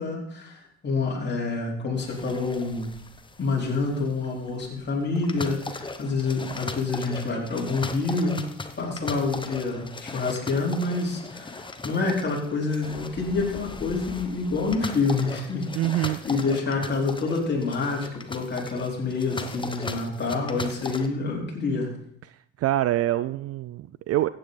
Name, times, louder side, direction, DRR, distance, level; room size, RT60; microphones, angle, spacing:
voice 1, 0.0-2.9 3.4-8.4 8.8-15.7 15.9-21.9, left 3 dB, 30° left, -3 dB, 4.1 m, -27 dB
sound 1, 2.0-21.1, left 3 dB, 15° left, 1.0 m, -38 dB
voice 2, 15.8-16.2 22.6-24.3, right 14 dB, 45° right, 16 dB, 0.4 m, -25 dB
14.5 x 9.0 x 4.0 m, 0.70 s
supercardioid pair, 90°, 36 cm